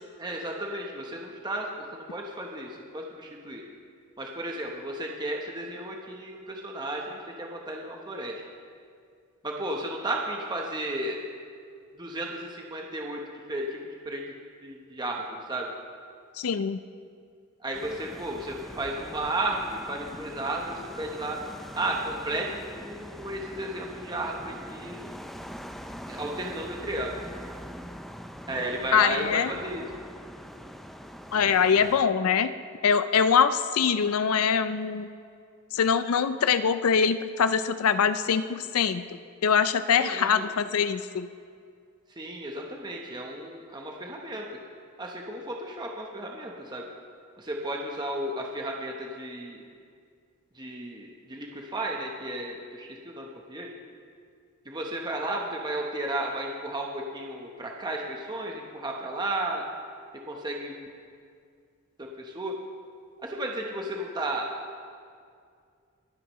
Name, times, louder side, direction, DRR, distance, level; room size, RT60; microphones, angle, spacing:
voice 1, 0.2-3.6 4.2-8.4 9.4-11.2 12.0-13.2 13.5-13.8 14.1-14.2 14.6-15.7 17.6-21.4 21.7-25.0 26.1-27.1 28.5-29.9 40.0-40.5 42.1-44.5 45.0-46.9 47.4-49.6 50.5-53.7 54.6-59.6 60.2-60.9 62.0-62.5 63.2-64.5, right 1 dB, 20° right, 0 dB, 0.9 m, -33 dB
voice 2, 16.4-16.8 28.9-29.5 31.3-32.5 32.8-35.1 35.7-39.0 39.4-41.3, left 6 dB, 75° left, 12 dB, 0.4 m, -23 dB
sound 1, 17.7-32.0, equal, ahead, 0.4 m, -43 dB
23.5 x 9.6 x 3.1 m, 2.3 s
head